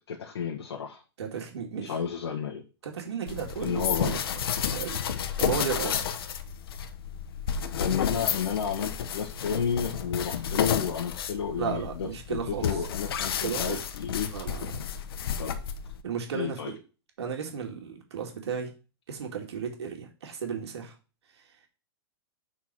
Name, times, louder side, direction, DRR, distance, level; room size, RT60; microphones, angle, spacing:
voice 1, 0.1-1.0 1.8-2.6 3.6-4.2 5.8-6.0 7.8-14.3 15.4-15.5 16.3-16.7, left 7 dB, 90° left, 0 dB, 1.6 m, -31 dB
voice 2, 1.2-1.9 2.8-4.2 4.7-5.0 5.4-5.9 11.6-12.7 13.4-13.8 14.3-14.8 16.0-16.8 17.2-18.7 19.1-20.9, right 7 dB, 85° right, 2 dB, 2.3 m, -34 dB
sound 1, 3.3-16.0, left 8 dB, 65° left, 1.0 m, -31 dB
7.2 x 4.7 x 6.2 m, 0.33 s
supercardioid pair, 170°, 14 cm